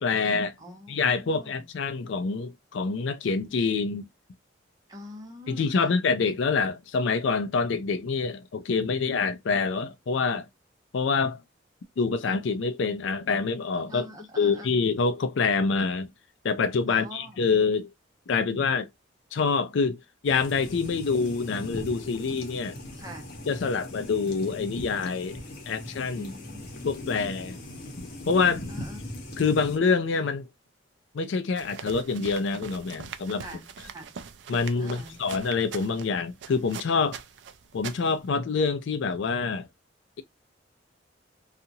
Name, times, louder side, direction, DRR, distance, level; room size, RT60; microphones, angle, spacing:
voice 1, 0.0-0.5 0.9-4.0 5.5-10.5 10.9-11.4 12.0-14.1 14.4-16.1 16.4-17.9 18.3-18.9 19.3-22.8 23.5-25.4 25.7-26.3 26.8-27.6 28.3-28.7 29.4-30.5 31.1-33.4 34.5-37.2 37.7-39.7, left 4 dB, 70° left, 0.4 m, -26 dB
voice 2, 0.6-1.5 4.9-5.9 13.9-14.9 16.9-17.5 22.9-23.2 26.1-27.5 28.7-29.0 33.4-33.6 33.9-34.1 34.8-35.2, equal, 20° right, 1.0 m, -44 dB
sound 1, 20.2-29.8, left 1 dB, 50° left, 0.9 m, -40 dB
sound 2, 31.5-38.3, right 7 dB, 65° right, 0.4 m, -42 dB
2.8 x 2.4 x 2.6 m
head